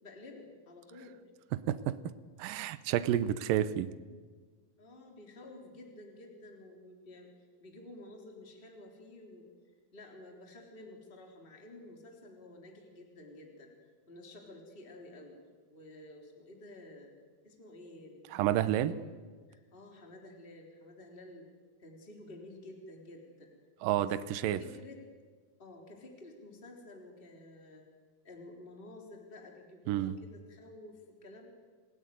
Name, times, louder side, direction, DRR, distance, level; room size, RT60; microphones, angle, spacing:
voice 1, 0.0-1.2 4.8-7.3 7.6-9.5 9.9-13.7 14.1-15.4 15.7-17.1 17.4-19.2 19.5-21.5 21.8-23.5 23.9-24.1 24.4-25.0 25.6-27.8 28.2-31.5, left 2 dB, 15° left, 1 dB, 3.6 m, -51 dB
voice 2, 1.5-2.0 2.4-3.9 18.3-18.9 23.8-24.6 29.9-30.2, right 12 dB, 75° right, 14 dB, 2.5 m, -30 dB
27.5 x 17.0 x 9.5 m, 1.5 s
omnidirectional pair, 4.1 m